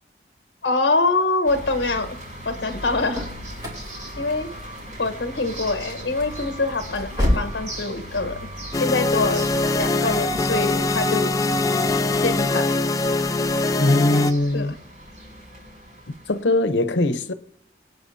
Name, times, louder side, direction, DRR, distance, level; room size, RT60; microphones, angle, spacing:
voice 1, 0.6-2.2 2.4-3.3 4.2-4.5 5.0-8.4 8.8-11.3 12.2-12.8 14.5-14.7, left 3 dB, 65° left, 1.1 m, -24 dB
sound 1, 1.4-16.4, right 1 dB, 40° right, 6.5 m, -38 dB
sound 2, 2.9-7.6, left 1 dB, 20° right, 3.3 m, -29 dB
sound 3, 8.7-14.3, left 2 dB, 20° left, 0.4 m, -22 dB
voice 2, 13.8-14.7 16.3-17.3, left 2 dB, 90° left, 0.8 m, -20 dB
25.0 x 8.8 x 2.8 m
head